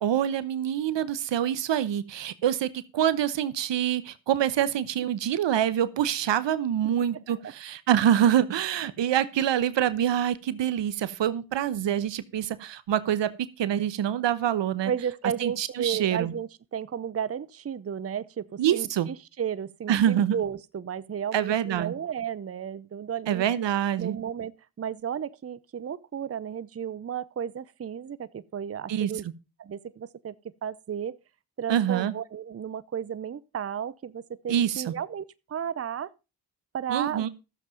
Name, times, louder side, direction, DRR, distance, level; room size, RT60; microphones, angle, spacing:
voice 1, 0.0-14.9 15.4-16.3 18.6-19.1 19.9-20.4 21.3-21.9 23.3-24.2 28.9-29.1 31.7-32.1 34.5-34.9 36.9-37.3, right 10 dB, 70° right, 1.0 m, -26 dB
voice 2, 14.8-23.4 24.0-29.3 29.6-30.3 30.6-31.2 31.6-36.1 36.7-37.3, right 8 dB, 30° right, 0.7 m, -33 dB
12.5 x 7.5 x 5.1 m
supercardioid pair, 40°, 45 cm